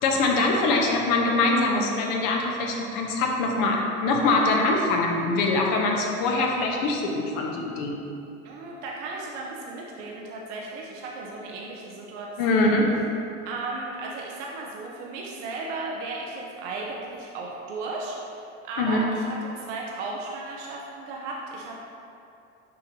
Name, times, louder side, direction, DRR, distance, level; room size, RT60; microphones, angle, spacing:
voice 1, 0.0-7.9 12.4-12.8 18.8-19.0, left 2 dB, 60° left, 0 dB, 1.1 m, -23 dB
voice 2, 8.4-12.8 13.4-21.9, right 3 dB, 75° right, -2 dB, 0.9 m, -35 dB
6.6 x 5.2 x 2.9 m, 2.6 s
hypercardioid pair, 80°, 36 cm